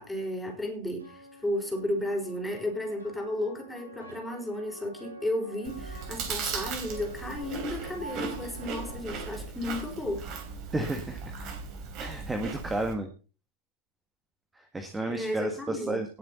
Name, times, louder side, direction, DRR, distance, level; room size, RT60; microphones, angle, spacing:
voice 1, 0.0-10.2 15.1-16.0, left 1 dB, 5° left, 4.5 m, -33 dB
sound 1, 1.0-9.0, right 2 dB, 75° right, 5.2 m, -48 dB
Chewing mastication, 5.6-12.9, right 4 dB, 40° right, 3.5 m, -37 dB
voice 2, 10.7-11.3 12.0-13.1 14.5-16.2, right 2 dB, 10° right, 1.7 m, -32 dB
18.5 x 7.4 x 4.2 m
figure-of-eight pair, 90°, 0 cm